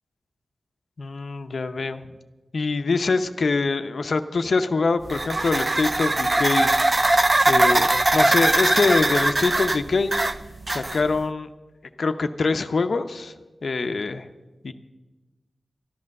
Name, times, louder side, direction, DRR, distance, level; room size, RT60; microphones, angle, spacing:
voice 1, 1.0-2.0 2.5-10.1 10.7-11.5 12.0-13.3 13.6-14.3 14.6-14.7, left 4 dB, 65° left, 9 dB, 0.7 m, -24 dB
sound 1, 5.1-11.2, right 2 dB, 30° right, 0.5 m, -21 dB
13.0 x 11.0 x 6.5 m, 1.2 s
wide cardioid pair, 120°, 0 cm